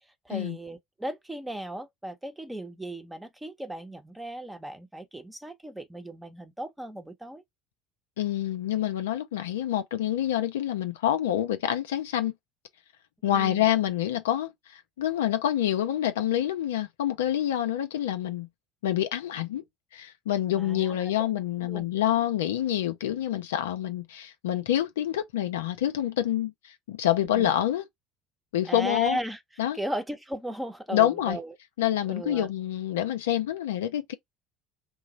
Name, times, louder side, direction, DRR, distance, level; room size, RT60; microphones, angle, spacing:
voice 1, 0.2-7.4 13.3-13.7 20.6-21.3 21.7-21.8 27.3-27.5 28.7-29.4 29.7-31.5 32.1-32.5, right 1 dB, 10° right, 0.8 m, -36 dB
voice 2, 8.2-12.3 13.2-18.5 18.8-19.6 19.9-27.9 28.5-29.2 29.6-29.8 30.9-31.4 31.8-34.1, left 11 dB, 80° left, 0.4 m, -27 dB
3.0 x 2.0 x 3.9 m
hypercardioid pair, 70°, 0 cm